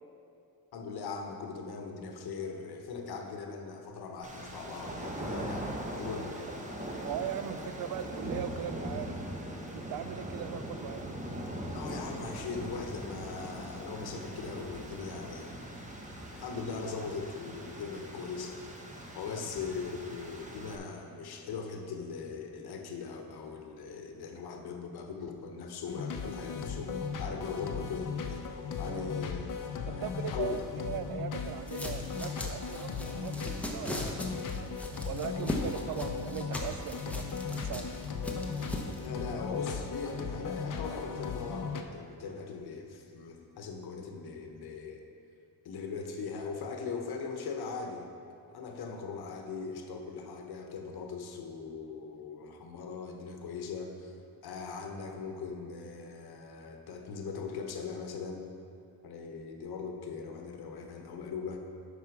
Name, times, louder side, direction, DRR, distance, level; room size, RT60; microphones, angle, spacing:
voice 1, 0.7-6.5 11.7-15.6 16.2-18.6 19.1-28.4 28.8-29.5 29.8-30.9 39.0-45.1 45.6-48.1 48.5-54.1 54.4-58.5 59.0-61.6, left 5 dB, 80° left, 3 dB, 1.1 m, -40 dB
sound 1, 4.2-20.8, right 1 dB, 20° right, 1.1 m, -41 dB
voice 2, 7.0-9.2 9.7-11.1 28.9-29.1 29.9-34.8 35.0-37.2 37.5-37.8, right 9 dB, 65° right, 12 dB, 0.5 m, -39 dB
sound 2, 25.9-41.8, left 5 dB, 55° left, 0.8 m, -37 dB
sound 3, 31.7-39.1, left 1 dB, 5° left, 1.0 m, -39 dB
9.4 x 5.8 x 4.8 m, 2.6 s
cardioid pair, 100°, 37 cm